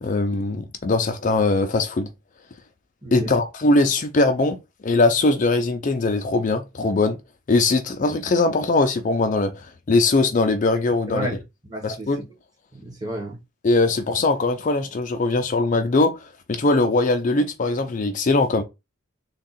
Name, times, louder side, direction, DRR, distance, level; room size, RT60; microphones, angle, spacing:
voice 1, 0.0-2.1 3.1-4.6 4.8-7.2 7.5-11.3 11.8-12.2 13.6-16.1 16.5-18.6, left 3 dB, 40° left, 0.4 m, -21 dB
voice 2, 3.0-3.3 11.1-12.1 12.7-13.4, right 1 dB, 20° right, 1.2 m, -32 dB
3.5 x 2.3 x 4.0 m
head